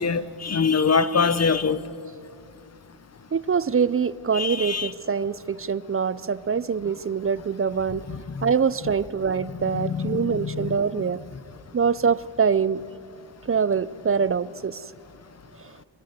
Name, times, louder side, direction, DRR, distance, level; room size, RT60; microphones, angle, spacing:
voice 1, 0.0-1.8 4.3-4.9 8.1-8.5 9.6-10.7, left 5 dB, 30° left, 15 dB, 0.8 m, -24 dB
voice 2, 3.3-8.0 8.4-11.2 11.7-12.8 13.5-14.8, right 6 dB, 30° right, 18 dB, 0.4 m, -24 dB
25.5 x 11.5 x 9.6 m, 2.5 s
cardioid pair, 80°, 49 cm